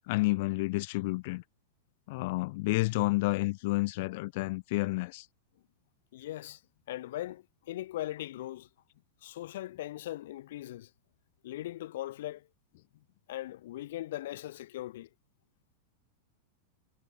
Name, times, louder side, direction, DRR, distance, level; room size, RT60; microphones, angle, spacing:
voice 1, 0.1-1.4 2.1-5.3, left 22 dB, 40° left, 4.4 m, -30 dB
voice 2, 6.1-6.6 6.9-8.7 9.2-10.9 11.4-12.5 13.3-15.1, left 14 dB, 60° left, 4.9 m, -39 dB
supercardioid pair, 175°, 0 cm